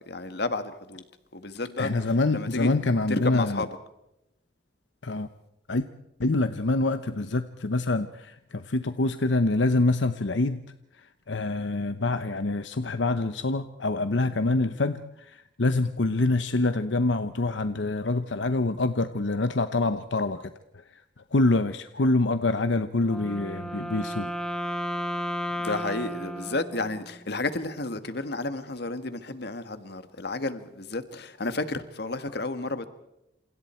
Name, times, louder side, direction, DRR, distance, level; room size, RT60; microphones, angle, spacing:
voice 1, 0.1-1.0 1.3-1.9 2.3-2.7 3.1-3.7 25.6-32.9, left 2 dB, 60° left, 1.6 m, -31 dB
voice 2, 1.8-3.6 5.0-5.3 5.7-5.9 6.2-10.6 10.9-20.5 20.9-21.0 21.3-24.3, left 2 dB, 80° left, 0.9 m, -26 dB
Wind instrument woodwind instrument, 23.0-27.3, equal, 5° left, 1.2 m, -33 dB
29.0 x 27.5 x 4.4 m
head